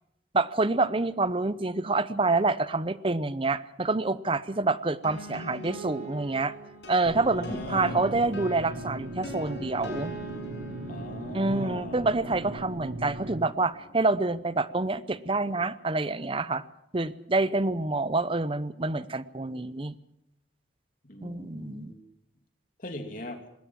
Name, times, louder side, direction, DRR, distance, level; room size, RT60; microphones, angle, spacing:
voice 1, 0.3-6.5 6.9-10.1 11.3-16.6 16.9-19.9 21.2-21.9, right 3 dB, 30° right, 15 dB, 0.7 m, -27 dB
sound 1, 5.0-14.6, right 1 dB, 70° left, 7.1 m, -43 dB
sound 2, 7.1-13.4, right 1 dB, 85° right, 1.2 m, -39 dB
voice 2, 7.2-8.2 10.9-12.1 21.0-22.1 22.8-23.4, left 1 dB, 45° left, 5 dB, 2.9 m, -40 dB
20.5 x 18.0 x 7.5 m, 0.81 s
head